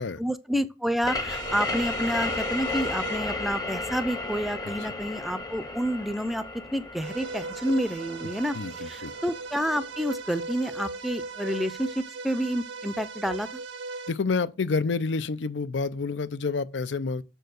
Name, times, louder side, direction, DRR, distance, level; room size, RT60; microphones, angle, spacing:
voice 1, 0.2-8.6 8.8-13.6, equal, ahead, 0.5 m, -29 dB
sound 1, 1.0-10.4, left 2 dB, 20° left, 0.9 m, -34 dB
sound 2, 1.3-3.2 7.0-14.1, right 3 dB, 85° right, 0.7 m, -38 dB
voice 2, 8.5-9.1 14.1-17.2, left 4 dB, 80° left, 0.5 m, -29 dB
6.5 x 4.5 x 6.5 m
head